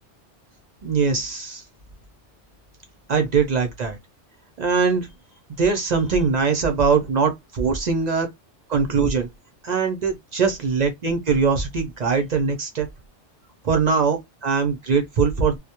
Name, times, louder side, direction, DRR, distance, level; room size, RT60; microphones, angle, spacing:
voice 1, 0.8-1.6 3.1-4.0 4.6-5.1 5.6-8.3 8.7-9.3 9.6-12.9 13.6-15.6, right 5 dB, 55° right, 0.5 m, -21 dB
2.2 x 2.1 x 2.8 m
omnidirectional pair, 1.2 m